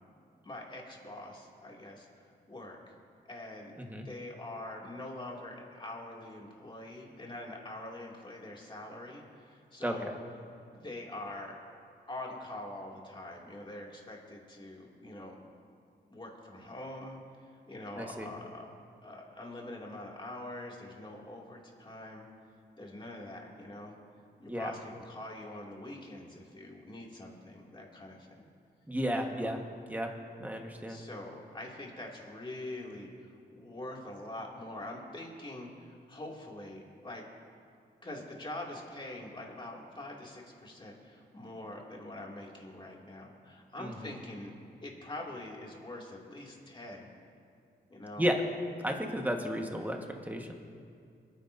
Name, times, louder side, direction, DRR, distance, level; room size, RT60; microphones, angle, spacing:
voice 1, 0.4-2.1 2.5-2.8 3.2-3.7 4.0-10.1 10.7-11.6 12.1-15.4 16.1-18.7 19.0-22.3 22.8-24.0 24.4-28.5 29.2-29.5 30.9-37.2 38.0-44.6 44.8-47.1 47.9-48.2, left 1 dB, 25° left, -2 dB, 2.5 m, -44 dB
voice 2, 9.8-10.1 18.0-18.3 24.5-24.7 28.9-29.6 29.9-30.1 30.4-31.0 43.8-44.2 48.2-48.4 48.8-50.5, equal, 10° right, 2 dB, 1.4 m, -33 dB
27.0 x 10.0 x 2.7 m, 2.4 s
cardioid pair, 90°, 18 cm